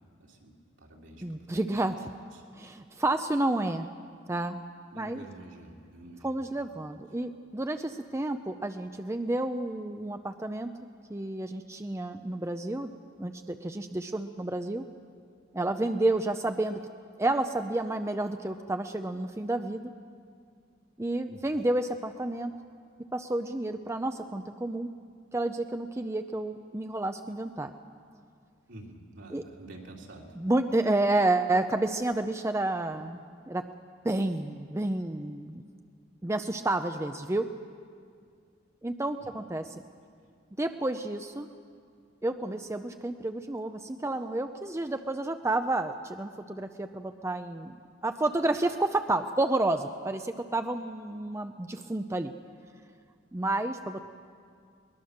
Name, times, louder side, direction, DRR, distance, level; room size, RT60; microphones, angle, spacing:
voice 1, 0.2-0.5 0.8-1.9 2.3-2.8 4.9-6.4 21.3-21.4 28.7-30.4 39.2-39.3, right 2 dB, 70° right, -1 dB, 3.1 m, -49 dB
voice 2, 1.2-1.9 2.6-3.9 4.3-4.6 5.0-5.2 6.2-10.7 11.1-12.9 13.2-14.8 15.5-16.8 17.2-19.9 21.0-22.5 23.1-24.9 25.3-27.7 29.3-29.4 30.4-33.2 33.5-33.7 34.0-35.6 36.2-37.5 38.8-39.8 40.6-41.5 42.2-47.7 48.0-52.3 53.3-54.0, right 2 dB, 15° right, 7 dB, 0.5 m, -30 dB
22.0 x 20.5 x 6.6 m, 2.2 s
head